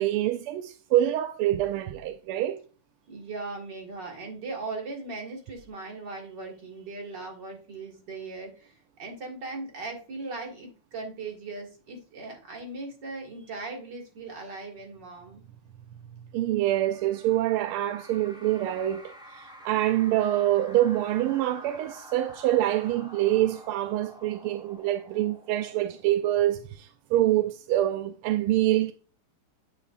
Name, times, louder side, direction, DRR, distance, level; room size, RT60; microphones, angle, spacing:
voice 1, 0.0-2.6 16.3-28.9, right 13 dB, 85° right, 1.5 m, -26 dB
voice 2, 3.1-15.4, right 3 dB, 55° right, 2.5 m, -39 dB
sound 1, 16.7-26.4, equal, 5° right, 0.8 m, -49 dB
9.9 x 5.7 x 2.4 m
omnidirectional pair, 2.4 m